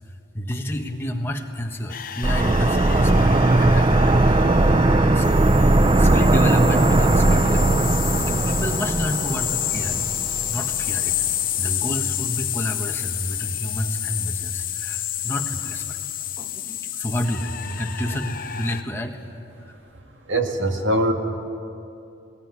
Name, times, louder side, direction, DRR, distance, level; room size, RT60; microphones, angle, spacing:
voice 1, 0.3-4.3 5.1-7.7 8.3-10.0 10.5-11.2 11.6-16.0 16.4-19.2 19.6-19.8, equal, 15° left, 2 dB, 1.5 m, -29 dB
sound 1, 1.9-18.8, left 11 dB, 45° left, 0.9 m, -29 dB
sound 2, 2.2-10.9 11.2-11.3, right 2 dB, 25° right, 0.5 m, -18 dB
voice 2, 20.3-21.1, right 1 dB, 80° right, 4 dB, 2.0 m, -21 dB
19.5 x 19.0 x 9.7 m, 2.7 s
head